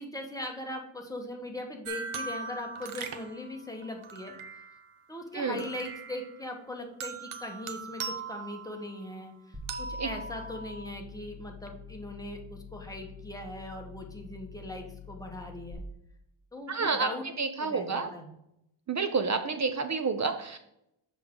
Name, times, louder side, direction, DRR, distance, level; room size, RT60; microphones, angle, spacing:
voice 1, 0.0-4.3 5.1-15.8 16.5-17.3 17.6-18.3, left 1 dB, 5° left, 1 dB, 1.0 m, -40 dB
sound 1, 1.8-4.9 5.5-6.5 7.0-9.2 9.7-10.9, right 5 dB, 85° right, 0.8 m, -40 dB
voice 2, 5.3-5.7 10.0-10.1 16.7-17.1 17.4-18.1 18.9-20.6, right 4 dB, 35° right, 9 dB, 0.5 m, -29 dB
sound 2, 9.5-15.7, left 4 dB, 10° right, 1.2 m, -46 dB
7.0 x 6.0 x 3.6 m, 0.81 s
wide cardioid pair, 165°, 50 cm